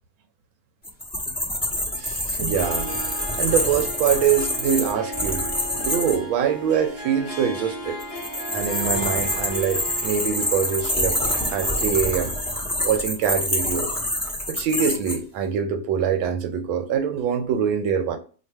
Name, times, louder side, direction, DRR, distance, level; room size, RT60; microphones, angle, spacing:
sound 1, 0.8-6.2 8.0-15.2, left 1 dB, 10° left, 0.5 m, -26 dB
voice 1, 1.9-5.4 5.8-8.0 8.5-13.9 14.5-18.2, right 7 dB, 75° right, 1.3 m, -24 dB
Harp, 2.5-14.3, equal, 40° left, 0.9 m, -37 dB
3.3 x 2.5 x 4.2 m
omnidirectional pair, 2.3 m